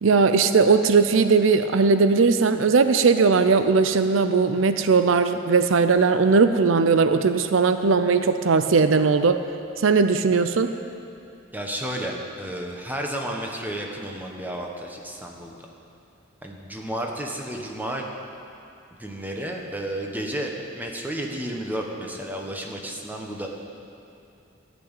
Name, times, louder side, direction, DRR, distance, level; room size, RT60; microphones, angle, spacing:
voice 1, 0.0-9.4 9.8-10.7, right 4 dB, 90° right, 9 dB, 0.5 m, -19 dB
voice 2, 11.5-15.6 16.4-18.1 19.0-23.5, right 1 dB, 10° right, 0 dB, 1.2 m, -32 dB
13.5 x 6.2 x 9.0 m, 2.7 s
head